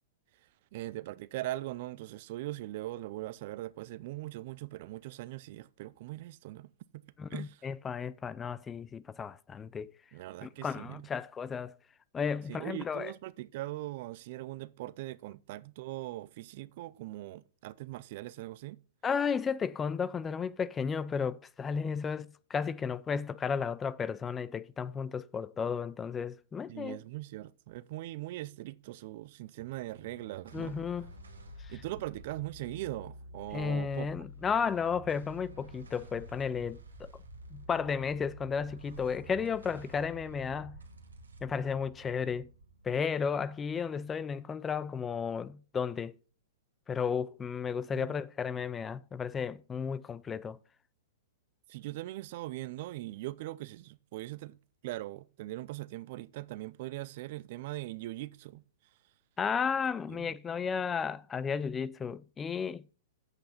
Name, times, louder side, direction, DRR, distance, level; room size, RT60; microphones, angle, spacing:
voice 1, 0.7-7.0 7.3-7.6 10.1-11.1 12.5-18.8 26.7-30.8 31.7-34.1 47.9-48.1 51.7-54.6 54.8-58.6 60.1-60.3, right 16 dB, 50° right, 0.5 m, -41 dB
voice 2, 7.2-9.9 10.4-11.7 12.1-13.1 19.0-27.0 30.5-31.1 31.6-31.7 33.5-37.1 37.5-40.8 41.4-42.5 42.8-46.2 46.9-50.6 59.4-62.8, left 6 dB, 20° left, 0.4 m, -33 dB
sound 1, 29.6-44.2, equal, 85° right, 2.2 m, -50 dB
8.0 x 6.4 x 5.7 m
hypercardioid pair, 115°, 0 cm